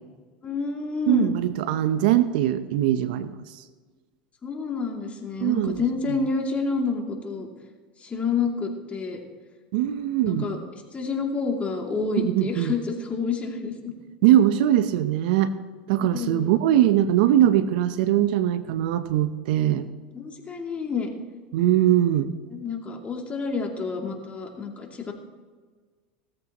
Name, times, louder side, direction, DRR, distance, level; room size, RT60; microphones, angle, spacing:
voice 1, 0.4-1.3 4.4-7.5 8.0-9.2 10.0-13.9 16.0-16.6 19.7-19.8 20.1-21.1 22.5-25.1, left 4 dB, 25° left, 1 dB, 2.7 m, -29 dB
voice 2, 1.1-3.3 5.4-5.7 9.7-10.5 12.2-12.7 14.2-15.5 15.9-19.9 21.5-22.3, right 12 dB, 70° right, 12 dB, 0.8 m, -21 dB
18.0 x 14.0 x 3.0 m, 1.5 s
hypercardioid pair, 95°, 5 cm